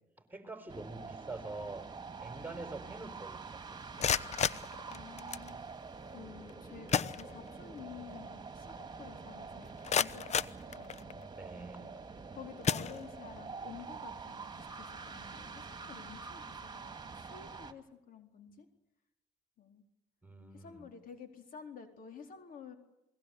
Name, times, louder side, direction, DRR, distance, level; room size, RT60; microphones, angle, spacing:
voice 1, 0.2-1.9 2.2-4.1 11.4-11.9 20.2-20.9, right 2 dB, 10° right, 8 dB, 4.4 m, -45 dB
sound 1, 0.7-17.7, right 4 dB, 25° right, 2.7 m, -46 dB
sound 2, 3.8-5.5 6.5-6.6 6.9-7.8 8.2-8.3 8.8-8.9 9.5-11.3 12.0-12.2 12.6-13.5, left 7 dB, 45° left, 0.9 m, -34 dB
voice 2, 4.9-5.6 6.1-11.3 12.3-14.5 14.8-16.4 16.7-18.6 19.6-19.8 20.5-22.7, left 7 dB, 60° left, 6 dB, 4.2 m, -51 dB
28.0 x 20.0 x 8.1 m, 0.86 s
supercardioid pair, 80°, 16 cm